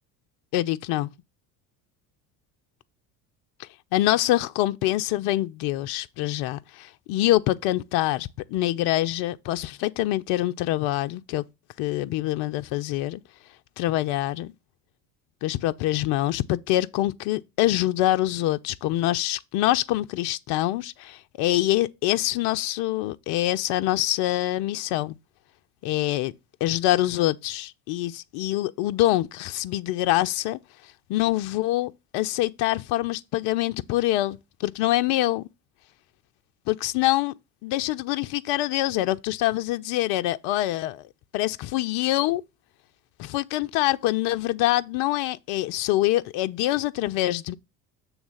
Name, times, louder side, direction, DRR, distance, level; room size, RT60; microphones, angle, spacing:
voice 1, 0.5-1.1 3.6-11.4 11.8-13.2 13.8-14.5 15.4-25.1 25.8-26.3 26.6-30.6 31.1-35.4 36.7-37.3 37.6-41.1 41.3-42.4 43.2-47.5, left 15 dB, 55° left, 0.5 m, -25 dB
7.1 x 3.3 x 6.1 m
hypercardioid pair, 70°, 47 cm